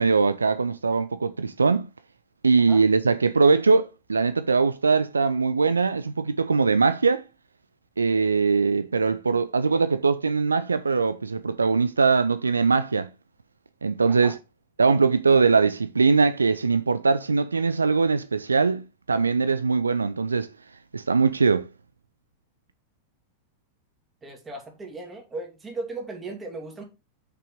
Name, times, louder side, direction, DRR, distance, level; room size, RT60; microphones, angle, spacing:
voice 1, 0.0-1.9 2.4-7.2 8.0-13.1 13.8-14.3 14.8-20.5 20.9-21.7, right 4 dB, 75° right, 0.4 m, -21 dB
voice 2, 24.2-26.8, right 3 dB, 15° right, 2.5 m, -37 dB
6.1 x 5.6 x 4.9 m
figure-of-eight pair, 90°, 0 cm